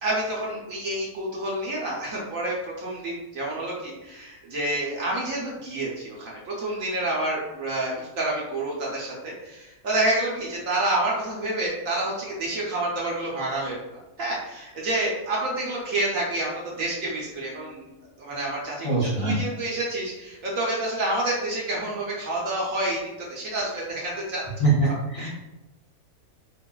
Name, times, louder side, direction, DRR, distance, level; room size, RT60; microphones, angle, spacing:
voice 1, 0.0-13.8 14.2-17.9 18.2-23.0 23.3-24.4 25.2-25.3, right 1 dB, 60° right, -4 dB, 1.1 m, -28 dB
voice 2, 18.8-19.4 24.6-25.3, right 2 dB, 35° left, -8 dB, 1.0 m, -23 dB
4.5 x 2.5 x 2.3 m, 1.0 s
omnidirectional pair, 1.7 m